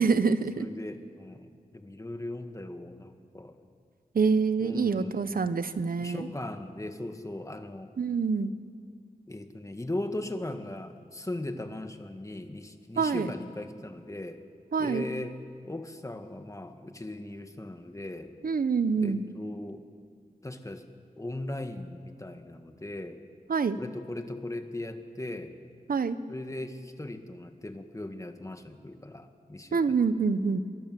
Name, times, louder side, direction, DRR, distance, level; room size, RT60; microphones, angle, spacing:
voice 1, 0.0-0.7 4.1-6.3 8.0-8.5 13.0-13.3 14.7-15.1 18.4-19.2 23.5-23.8 25.9-26.2 29.7-30.6, right 5 dB, 75° right, 13 dB, 1.0 m, -26 dB
voice 2, 0.6-3.6 4.6-5.5 6.0-7.9 9.3-14.4 14.8-15.4 15.6-18.3 18.9-19.8 20.4-20.9 21.2-23.2 23.8-25.5 26.3-30.0, left 1 dB, 20° left, 6 dB, 1.8 m, -38 dB
24.0 x 22.5 x 7.7 m, 2.2 s
wide cardioid pair, 90°, 15 cm